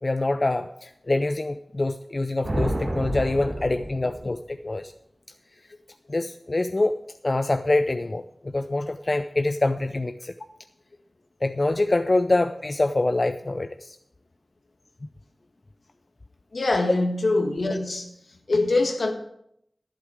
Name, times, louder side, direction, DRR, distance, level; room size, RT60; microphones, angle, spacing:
voice 1, 0.0-4.9 6.1-7.0 7.2-10.3 11.4-14.0, left 2 dB, 50° left, 9 dB, 0.5 m, -25 dB
sound 1, 2.4-4.6, right 1 dB, 75° right, 3.2 m, -29 dB
voice 2, 16.5-18.1 18.5-19.1, left 2 dB, 80° left, 4 dB, 1.6 m, -23 dB
11.5 x 10.5 x 4.9 m, 0.75 s
cardioid pair, 40°, 0 cm